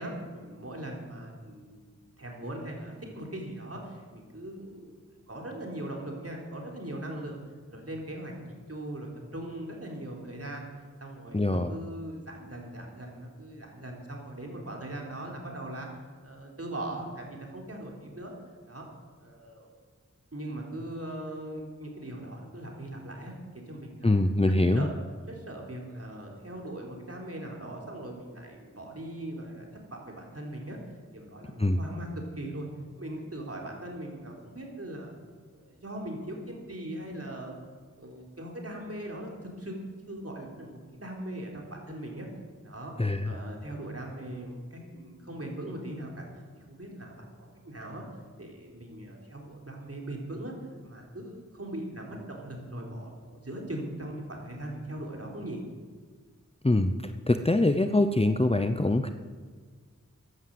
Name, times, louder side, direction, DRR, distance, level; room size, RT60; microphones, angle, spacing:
voice 1, 0.0-1.8 2.2-5.0 5.3-7.4 7.7-10.7 11.0-15.9 16.2-18.3 18.7-18.9 19.2-19.7 20.3-24.1 24.7-24.9 25.3-30.8 31.1-32.1 32.4-32.7 33.0-35.1 35.5-37.6 38.0-39.8 40.1-42.3 42.6-42.9 43.2-46.3 46.7-48.0 48.4-50.5 50.8-55.6, right 1 dB, 50° right, 0 dB, 3.8 m, -40 dB
voice 2, 11.3-11.7 24.0-24.9 31.6-31.8 43.0-43.3 56.6-59.1, left 2 dB, 20° left, 8 dB, 0.8 m, -24 dB
14.5 x 11.5 x 7.7 m, 1.6 s
wide cardioid pair, 45°, 30 cm